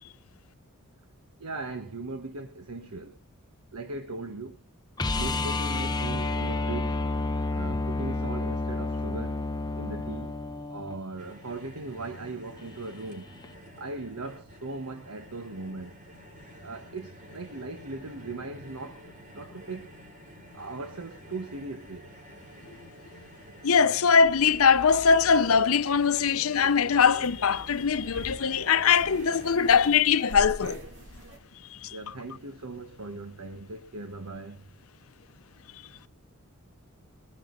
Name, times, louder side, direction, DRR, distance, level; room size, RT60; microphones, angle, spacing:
voice 1, 1.4-3.2 3.7-4.6 5.1-7.1 7.5-9.4 9.7-10.3 10.7-13.4 13.8-16.0 16.6-19.1 19.3-19.9 20.5-22.1 31.9-34.7, right 3 dB, 90° right, 1.3 m, -39 dB
sound 1, 5.0-11.0 13.4-13.5, left 2 dB, 20° left, 0.7 m, -30 dB
sound 2, 11.2-30.0, equal, 35° right, 3.2 m, -50 dB
voice 2, 23.6-30.8 31.7-32.0, left 6 dB, 70° left, 0.7 m, -22 dB
sound 3, 24.2-31.4, right 1 dB, 60° right, 2.6 m, -44 dB
21.5 x 9.6 x 3.9 m
head